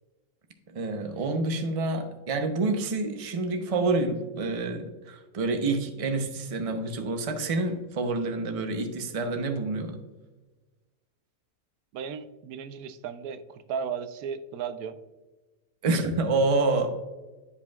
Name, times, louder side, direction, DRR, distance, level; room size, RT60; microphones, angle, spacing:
voice 1, 0.7-10.0 15.8-16.9, right 3 dB, 35° right, 6 dB, 0.6 m, -28 dB
voice 2, 11.9-15.0, right 7 dB, 90° right, 11 dB, 1.1 m, -35 dB
11.0 x 5.0 x 2.3 m, 1.2 s
omnidirectional pair, 1.5 m